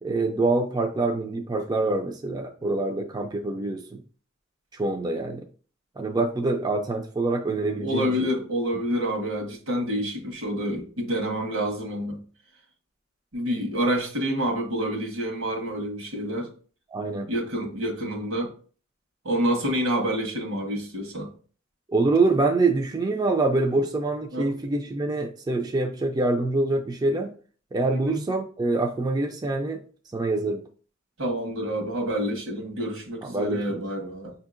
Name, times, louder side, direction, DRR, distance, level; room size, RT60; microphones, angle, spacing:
voice 1, 0.0-4.0 4.7-5.4 6.0-8.3 16.9-17.3 21.9-27.3 27.7-29.8 30.1-30.6 33.2-33.8, right 2 dB, 20° right, 0.3 m, -25 dB
voice 2, 7.8-12.2 13.3-16.5 17.3-18.5 19.2-21.3 24.3-24.5 27.9-28.2 31.2-34.3, equal, 85° right, 1.2 m, -28 dB
5.9 x 2.7 x 2.4 m
head